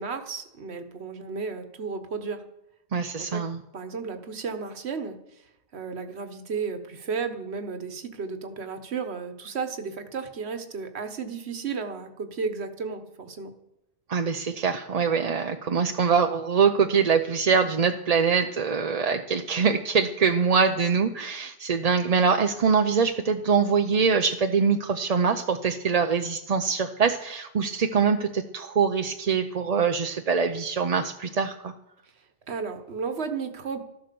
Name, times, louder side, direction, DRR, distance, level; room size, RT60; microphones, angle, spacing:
voice 1, 0.0-2.4 3.2-3.4 3.7-5.4 5.7-13.5 32.5-33.8, right 5 dB, 75° right, 7 dB, 1.5 m, -33 dB
voice 2, 2.9-3.6 14.1-31.7, right 5 dB, 40° right, 6 dB, 0.7 m, -24 dB
13.5 x 12.0 x 6.9 m, 0.85 s
omnidirectional pair, 1.1 m